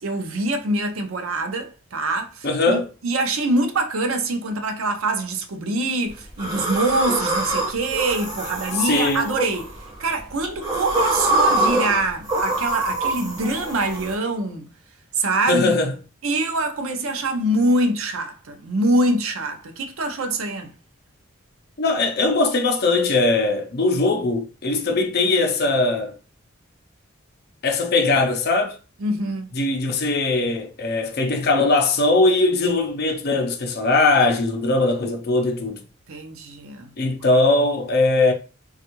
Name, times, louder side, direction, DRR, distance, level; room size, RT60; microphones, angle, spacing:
voice 1, 0.0-14.7 15.1-15.8 16.2-20.7 29.0-29.5 36.1-36.9, right 2 dB, 75° right, 0.5 m, -24 dB
voice 2, 2.4-2.9 8.8-9.3 15.5-15.9 21.8-26.2 27.6-28.8 29.6-35.8 37.0-38.3, left 3 dB, 50° left, 0.6 m, -20 dB
sound 1, 6.4-10.0 10.4-14.1, right 2 dB, 20° right, 1.3 m, -24 dB
3.4 x 2.3 x 2.9 m
head